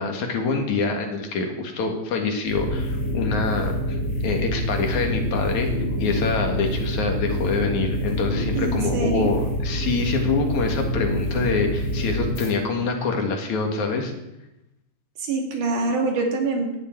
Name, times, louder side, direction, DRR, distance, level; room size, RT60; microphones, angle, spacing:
voice 1, 0.0-4.0 4.2-5.7 6.0-14.1, left 4 dB, 65° left, 3 dB, 3.2 m, -25 dB
sound 1, 2.5-12.5, equal, 40° left, 3.3 m, -26 dB
voice 2, 8.6-9.4 15.2-16.8, right 3 dB, 75° right, 1 dB, 3.9 m, -25 dB
18.0 x 12.5 x 4.6 m, 0.90 s
omnidirectional pair, 3.6 m